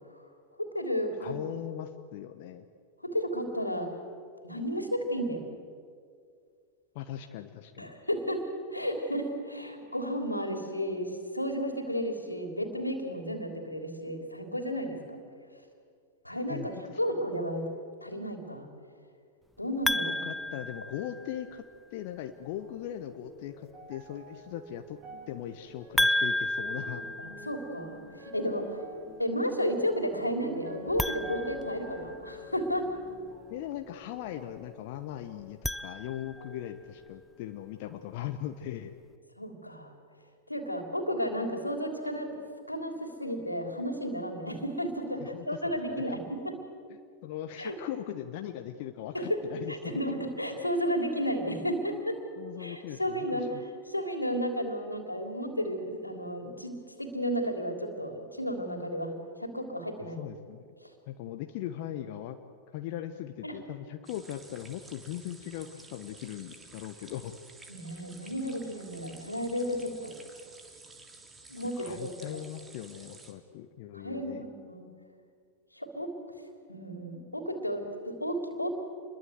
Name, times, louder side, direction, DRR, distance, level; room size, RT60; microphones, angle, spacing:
voice 1, 0.6-1.3 3.0-3.9 4.4-5.4 7.8-8.4 8.7-15.0 16.2-16.7 17.0-17.6 18.0-18.7 19.6-20.2 27.2-28.8 29.2-32.9 39.4-39.9 40.5-42.4 42.7-46.6 47.6-47.8 49.1-49.4 49.7-52.2 52.6-53.5 53.9-56.7 57.0-59.1 59.4-60.2 63.4-63.6 67.7-70.1 71.5-72.1 73.9-74.9 75.7-76.1 76.7-78.7, equal, 85° left, 5 dB, 3.5 m, -33 dB
voice 2, 1.2-2.6 6.9-7.9 16.5-17.0 20.0-21.6 21.9-25.0 25.3-27.0 33.5-38.9 45.2-46.2 47.2-50.0 52.4-53.6 60.2-60.7 61.1-62.4 62.7-67.3 71.7-74.4, left 12 dB, 50° left, 7 dB, 1.2 m, -39 dB
sound 1, 19.9-21.6 26.0-28.0 30.9-32.5 35.4-36.6, left 1 dB, 5° left, 0.6 m, -32 dB
sound 2, 22.6-36.0 36.4-37.3 38.0-38.1, left 1 dB, 35° right, 4.9 m, -48 dB
sound 3, 64.0-73.3, right 3 dB, 15° right, 3.2 m, -52 dB
28.5 x 22.0 x 7.9 m, 2.2 s
figure-of-eight pair, 90°, 0 cm